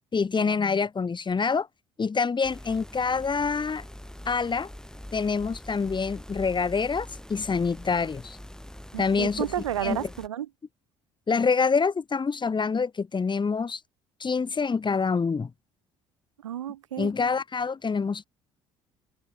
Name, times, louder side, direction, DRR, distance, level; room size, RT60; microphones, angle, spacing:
voice 1, 0.1-1.7 2.0-3.8 4.3-4.7 5.1-8.4 9.0-9.4 9.8-10.1 11.3-13.8 14.2-15.5 17.0-18.2, left 5 dB, 30° left, 3.1 m, -26 dB
sound 1, 2.4-10.3, left 1 dB, 5° left, 3.3 m, -43 dB
voice 2, 8.9-10.5 16.4-17.1, right 11 dB, 85° right, 1.4 m, -32 dB
open air
hypercardioid pair, 55°, 16 cm